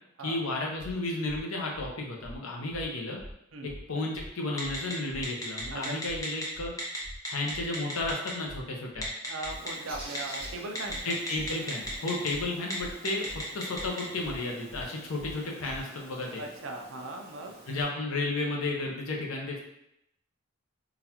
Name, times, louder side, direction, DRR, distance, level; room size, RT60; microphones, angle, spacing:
voice 1, 0.2-3.2 3.6-6.7 7.3-9.1 11.0-16.4 17.7-19.6, left 2 dB, 90° left, 0 dB, 0.7 m, -33 dB
sound 1, 0.8-0.9 1.2-1.4 1.7-1.9 2.2-2.4 2.7-2.8 3.2-3.3 3.6-3.8 4.1-4.3 4.6-4.8 5.1-5.2 5.6-5.7 6.0-6.2 6.5-6.7 7.0-7.2 7.5-7.6 8.0-8.1 8.4-8.6 8.9-9.1 9.4-9.6 9.9-10.0 10.4-10.5 10.8-11.0 11.3-11.5 11.8-12.0 12.3-12.4 12.8-12.9 13.2-13.4 13.7-13.9 14.2-14.4 14.7-14.8 15.2-15.3 15.6-15.8, equal, 50° left, 0.7 m, -44 dB
Telephone, 4.6-4.9 5.2-6.4 6.8-7.0 7.2-8.3 9.0-9.7 10.2-10.4 10.8-12.3 12.6-12.7 13.1-14.0, left 1 dB, 15° left, 0.6 m, -34 dB
voice 2, 9.2-11.1 16.4-17.5, right 2 dB, 70° right, 3 dB, 0.5 m, -39 dB
Bird, 9.5-17.8, right 1 dB, 45° right, 1.0 m, -49 dB
3.8 x 2.4 x 2.9 m, 0.79 s
head